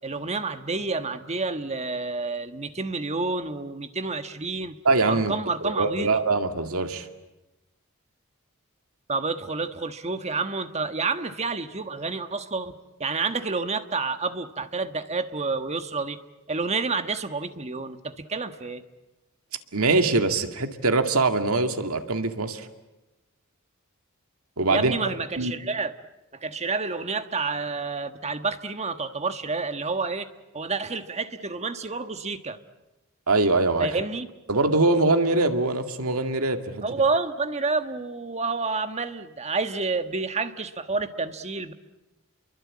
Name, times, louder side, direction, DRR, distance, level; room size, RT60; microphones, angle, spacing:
voice 1, 0.0-4.8 5.1-6.2 9.1-12.7 13.0-16.2 16.5-18.8 24.7-25.9 26.3-30.3 30.5-32.6 33.8-34.3 36.8-41.7, right 4 dB, 30° right, 9 dB, 1.4 m, -29 dB
voice 2, 4.8-5.3 5.6-7.1 19.7-22.7 24.6-24.9 25.4-25.5 33.3-33.9 34.5-36.8, right 3 dB, 85° right, 7 dB, 2.2 m, -23 dB
30.0 x 23.0 x 8.6 m, 1.0 s
head